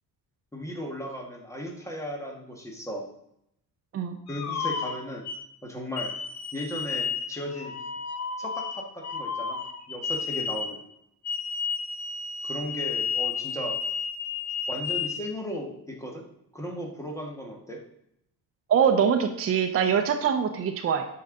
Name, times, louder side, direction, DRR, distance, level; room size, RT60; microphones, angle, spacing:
voice 1, 0.5-3.1 4.3-5.3 5.6-6.1 6.5-7.7 8.4-9.6 9.9-10.8 12.4-13.8 14.7-16.2 16.5-17.8, equal, 10° left, 1 dB, 1.4 m, -36 dB
sound 1, 4.3-5.4 6.0-10.8 11.2-15.2, left 5 dB, 45° left, 1.0 m, -32 dB
voice 2, 18.7-21.1, right 7 dB, 40° right, 4 dB, 0.7 m, -23 dB
9.5 x 5.5 x 3.8 m, 0.79 s
cardioid pair, 155°, 37 cm